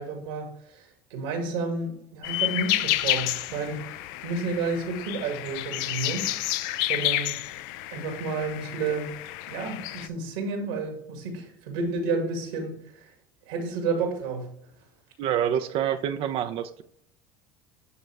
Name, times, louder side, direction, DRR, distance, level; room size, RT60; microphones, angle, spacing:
voice 1, 0.0-7.4 7.9-9.1 9.5-13.1 13.5-14.5, right 4 dB, 80° right, 3 dB, 2.3 m, -31 dB
sound 1, 2.2-10.1, left 15 dB, 70° left, 0.5 m, -30 dB
voice 2, 15.2-16.8, right 9 dB, 55° right, 9 dB, 0.6 m, -27 dB
11.0 x 4.0 x 3.3 m, 0.71 s
hypercardioid pair, 90°, 11 cm